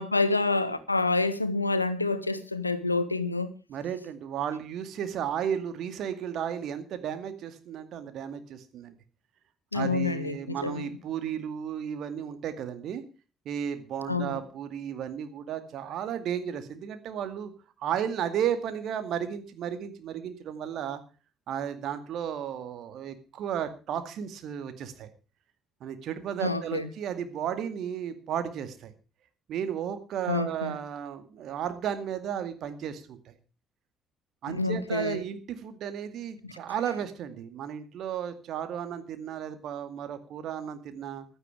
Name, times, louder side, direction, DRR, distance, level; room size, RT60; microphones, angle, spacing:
voice 1, 0.0-3.5 9.7-10.9 14.1-14.4 26.4-26.9 30.3-30.8 34.5-35.2 36.4-36.5, left 3 dB, 90° left, 0.9 m, -28 dB
voice 2, 3.7-8.9 9.7-13.0 13.5-17.5 17.8-21.0 21.5-25.1 25.8-28.9 29.5-33.3 34.4-41.3, right 9 dB, 55° right, 2.2 m, -34 dB
15.5 x 12.5 x 4.9 m
figure-of-eight pair, 45°, 0 cm